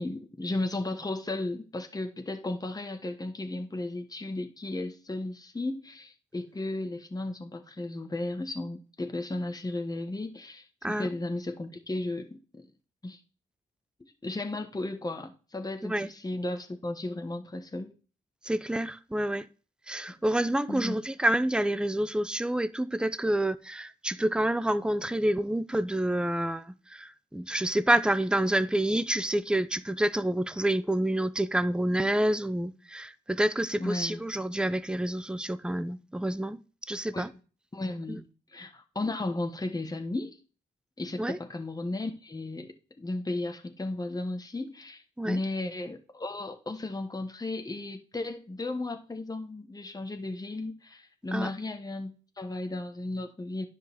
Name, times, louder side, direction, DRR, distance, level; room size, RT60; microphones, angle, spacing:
voice 1, 0.0-12.6 13.0-13.2 14.0-17.9 20.7-21.0 33.8-34.2 37.1-37.3 37.7-40.4 41.0-53.7, left 2 dB, 20° left, 1.2 m, -35 dB
voice 2, 18.4-19.5 19.9-36.6 36.9-37.3 38.1-38.2 41.2-41.4 45.2-45.4 51.3-51.5, right 1 dB, 5° right, 0.6 m, -28 dB
10.5 x 4.0 x 6.9 m
cardioid pair, 80°, 20 cm